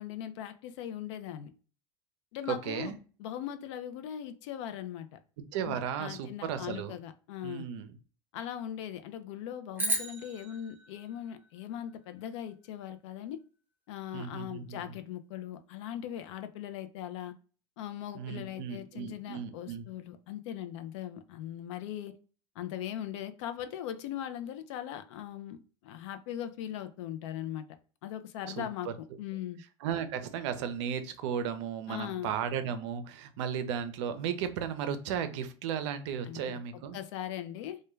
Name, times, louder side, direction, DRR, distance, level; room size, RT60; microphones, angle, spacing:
voice 1, 0.0-1.5 2.3-2.9 3.2-5.2 5.6-7.6 8.3-13.4 13.9-17.3 17.8-22.2 22.6-27.7 28.0-29.6 31.9-32.3 36.3-36.6 36.9-37.8, left 11 dB, 70° left, 0.4 m, -40 dB
voice 2, 2.5-3.0 5.5-6.9 7.4-7.9 14.1-15.0 18.1-19.8 28.6-28.9 29.8-37.0, right 8 dB, 70° right, 0.5 m, -35 dB
sound 1, 9.8-12.2, right 2 dB, 10° right, 0.8 m, -36 dB
2.2 x 2.1 x 3.0 m
hypercardioid pair, 105°, 16 cm